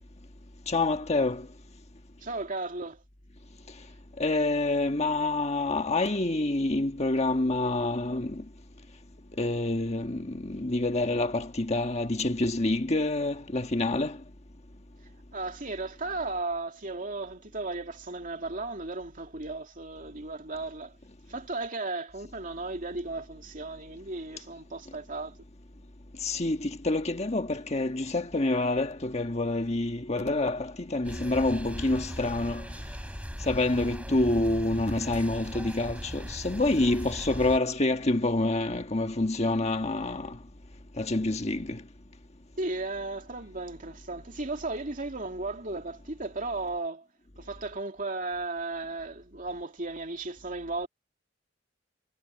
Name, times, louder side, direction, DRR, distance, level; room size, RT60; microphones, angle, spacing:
voice 1, 0.7-1.4 4.2-8.4 9.4-14.2 26.2-32.6 33.5-40.4 41.0-41.8, left 2 dB, 35° left, 1.5 m, -27 dB
voice 2, 2.2-3.0 15.3-21.0 21.3-25.3 42.6-47.1 47.4-50.9, right 2 dB, 45° right, 2.6 m, -35 dB
sound 1, 31.0-37.6, equal, 5° right, 7.4 m, -39 dB
head